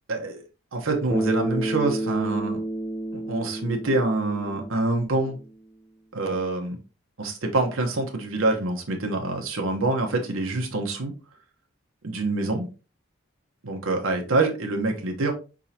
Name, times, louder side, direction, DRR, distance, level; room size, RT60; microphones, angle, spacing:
voice 1, 0.1-0.4 0.7-2.6 3.1-5.4 6.1-6.8 7.2-11.1 12.0-12.7 13.6-15.3, right 2 dB, 85° right, 2 dB, 1.0 m, -26 dB
Bass guitar, 1.1-5.5, right 1 dB, 10° left, 0.6 m, -30 dB
4.9 x 3.7 x 2.8 m, 0.33 s
head